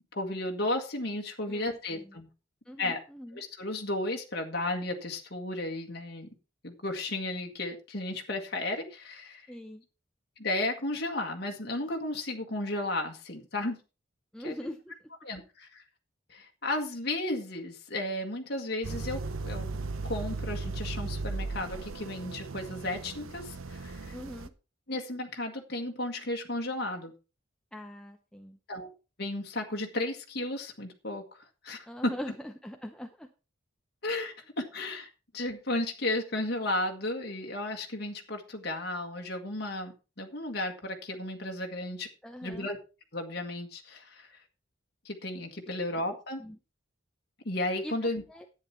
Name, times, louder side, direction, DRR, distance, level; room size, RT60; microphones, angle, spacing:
voice 1, 0.1-2.3 2.8-3.0 3.3-6.3 6.6-9.5 10.4-13.8 14.4-14.5 15.2-15.8 16.3-19.7 20.0-24.1 24.9-27.1 28.7-28.9 29.2-32.1 34.0-42.1 42.4-42.8 43.1-44.3 45.0-46.4 47.4-48.2, left 2 dB, 50° left, 2 dB, 1.8 m, -34 dB
voice 2, 1.5-2.2 2.7-3.4 9.5-9.8 14.3-14.9 24.1-24.5 27.7-28.6 31.9-33.3 42.2-42.7 46.4-46.6 47.8-47.9 48.3-48.5, equal, 5° left, 4 dB, 0.6 m, -42 dB
sound 1, 18.8-24.5, right 3 dB, 85° right, 0.8 m, -37 dB
10.5 x 9.0 x 4.4 m, 0.31 s
head